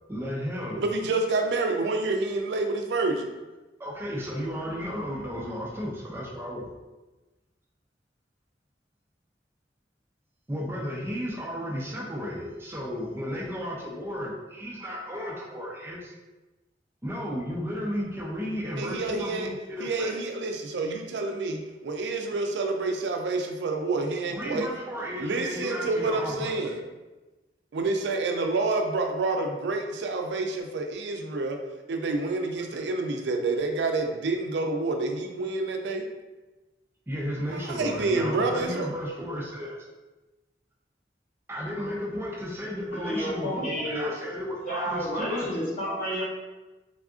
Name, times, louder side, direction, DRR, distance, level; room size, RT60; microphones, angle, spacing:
voice 1, 0.1-0.8 3.8-6.7 10.5-16.1 17.0-20.2 24.3-26.7 32.6-32.8 37.1-39.8 41.5-45.5 46.2-46.3, equal, 15° right, -3 dB, 0.4 m, -34 dB
voice 2, 0.7-3.3 18.8-19.5 19.8-24.7 25.2-26.8 27.7-31.6 31.9-36.1 37.5-38.9, right 3 dB, 80° right, 4 dB, 0.4 m, -28 dB
voice 3, 42.9-44.1 44.6-46.2, equal, 50° left, -6 dB, 0.9 m, -30 dB
3.4 x 2.4 x 2.4 m, 1.1 s
head